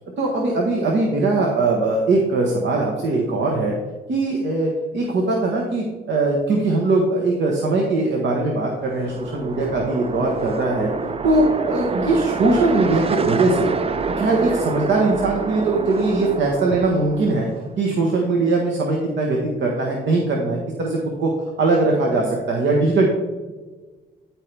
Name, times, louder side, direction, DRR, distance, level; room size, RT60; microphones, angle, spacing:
voice 1, 0.2-3.7 4.1-10.9 11.2-13.7 14.2-17.5 17.8-21.3 21.6-23.1, right 2 dB, 65° right, -1 dB, 1.3 m, -20 dB
sound 1, 8.7-17.8, right 4 dB, 30° right, 0.5 m, -27 dB
13.0 x 4.6 x 3.4 m, 1.3 s
cardioid pair, 90°, 20 cm